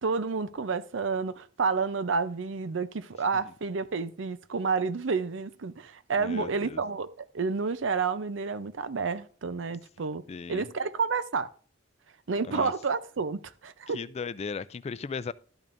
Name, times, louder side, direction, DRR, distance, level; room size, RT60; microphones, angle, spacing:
voice 1, 0.0-10.2 10.5-11.5 12.3-14.0, right 4 dB, 85° right, 0.6 m, -30 dB
voice 2, 6.2-6.8 10.3-10.7 12.5-12.7 13.9-15.3, left 5 dB, 35° left, 0.3 m, -36 dB
12.0 x 8.8 x 2.6 m
head